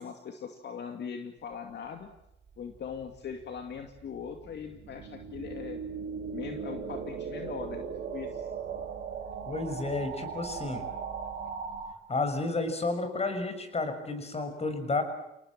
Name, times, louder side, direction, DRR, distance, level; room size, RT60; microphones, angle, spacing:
voice 1, 0.0-2.1 2.6-5.8 6.3-7.9 8.1-8.5, left 7 dB, 60° left, 5 dB, 2.5 m, -40 dB
sound 1, 2.6-11.9, right 6 dB, 55° right, 5.5 m, -38 dB
voice 2, 9.5-10.8 12.1-15.0, left 3 dB, 30° left, 7 dB, 6.4 m, -31 dB
29.5 x 19.0 x 7.5 m, 0.85 s
cardioid pair, 90°, 20 cm